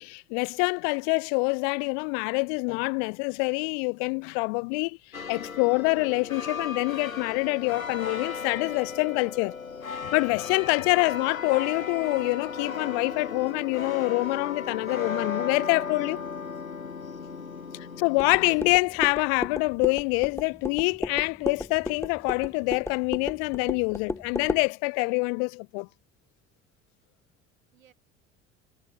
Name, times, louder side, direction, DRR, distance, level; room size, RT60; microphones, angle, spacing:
voice 1, 0.0-5.0 5.3-9.5 10.0-16.2 18.0-25.9, left 40 dB or more, 50° left, 0.5 m, -26 dB
sound 1, 5.1-18.7, left 5 dB, 85° left, 1.8 m, -36 dB
voice 2, 16.2-16.6 17.3-18.0 27.7-27.9, right 9 dB, 75° right, 7.1 m, -61 dB
sound 2, 18.2-24.7, left 3 dB, 5° left, 0.6 m, -34 dB
figure-of-eight pair, 60°, 40 cm